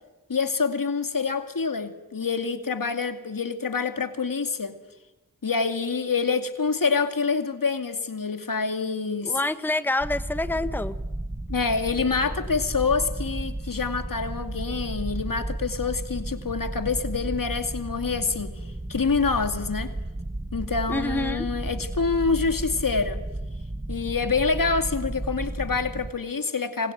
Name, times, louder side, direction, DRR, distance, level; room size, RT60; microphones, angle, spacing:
voice 1, 0.3-4.8 5.4-9.4 11.5-18.5 18.9-19.9 20.5-23.2 23.9-26.9, left 4 dB, 70° left, 2.3 m, -26 dB
voice 2, 9.2-10.9 20.9-21.5, left 2 dB, 5° left, 1.2 m, -27 dB
sound 1, 10.0-26.1, right 1 dB, 20° right, 1.8 m, -33 dB
25.5 x 21.0 x 9.3 m
wide cardioid pair, 60°, 34 cm